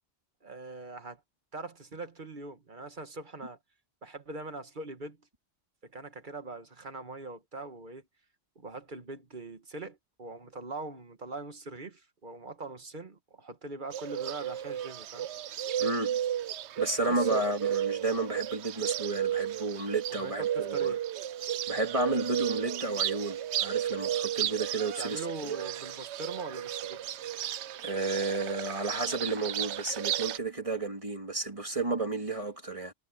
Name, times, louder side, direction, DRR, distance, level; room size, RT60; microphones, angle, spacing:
voice 1, 0.4-1.2 1.5-3.6 4.0-5.2 5.8-8.0 8.5-15.3 17.0-17.4 20.1-21.0 25.0-27.0, right 3 dB, 45° right, 1.7 m, -42 dB
Bird, 13.9-30.4, right 10 dB, 75° right, 0.9 m, -33 dB
voice 2, 15.8-16.2 16.8-20.9 21.7-25.6 27.8-32.9, right 2 dB, 30° right, 2.8 m, -32 dB
omnidirectional pair, 1.2 m